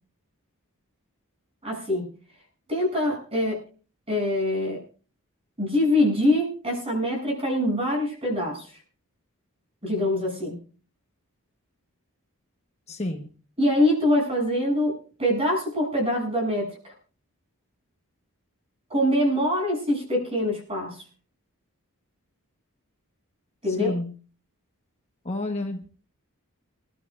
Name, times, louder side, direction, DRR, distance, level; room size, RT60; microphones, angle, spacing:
voice 1, 1.6-2.0 2.7-3.6 4.1-4.8 5.6-8.8 9.8-10.6 13.6-16.9 18.9-21.0 23.6-24.0, left 1 dB, 25° right, 0 dB, 7.7 m, -24 dB
voice 2, 12.9-13.3 23.8-24.1 25.2-25.9, left 1 dB, 30° left, 3 dB, 1.2 m, -30 dB
28.0 x 12.0 x 2.5 m, 0.39 s
head